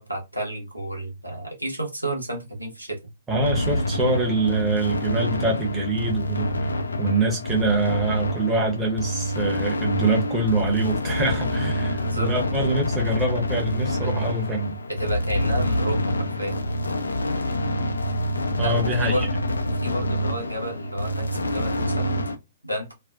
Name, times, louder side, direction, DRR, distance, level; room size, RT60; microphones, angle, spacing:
voice 1, 0.0-3.0 3.7-3.8 11.8-12.3 14.0-14.1 14.9-16.6 18.6-19.4 19.7-22.1 22.6-22.9, right 1 dB, 85° right, 0.9 m, -31 dB
voice 2, 3.3-6.7 7.0-14.8 18.6-19.3, right 2 dB, 10° right, 0.8 m, -25 dB
sound 1, 3.4-22.3, equal, 70° left, 0.4 m, -26 dB
2.5 x 2.2 x 2.3 m
figure-of-eight pair, 120°, 0 cm